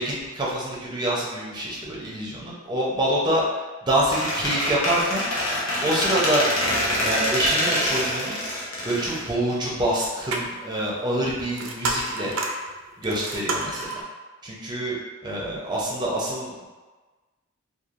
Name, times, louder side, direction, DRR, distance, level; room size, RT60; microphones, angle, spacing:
voice 1, 0.0-3.4 3.8-5.2 5.8-6.5 7.0-8.4 8.8-12.3 13.0-14.0 14.4-16.7, right 1 dB, 20° right, -5 dB, 0.5 m, -26 dB
Squeak, 4.1-9.9, left 1 dB, 90° left, 0.7 m, -25 dB
sound 1, 9.9-14.0, right 2 dB, 70° right, 0.4 m, -30 dB
3.0 x 2.3 x 2.5 m, 1.3 s
head